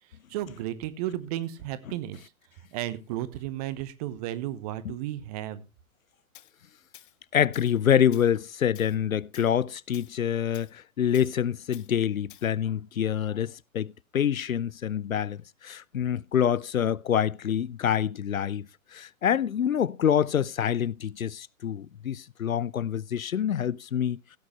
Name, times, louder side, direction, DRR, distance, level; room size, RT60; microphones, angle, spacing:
voice 1, 0.3-2.2 2.7-5.6, right 13 dB, 30° right, 1.0 m, -33 dB
Tools, 6.3-6.5 6.9-7.2 7.5-7.8 8.1-8.3 8.8-9.0 9.3-9.5 9.9-10.1 10.5-10.7 11.1-11.3 11.7-11.9 12.3-12.5, left 12 dB, 40° left, 0.8 m, -51 dB
voice 2, 7.3-24.2, left 9 dB, 75° left, 0.6 m, -26 dB
16.5 x 8.6 x 3.2 m
figure-of-eight pair, 120°, 42 cm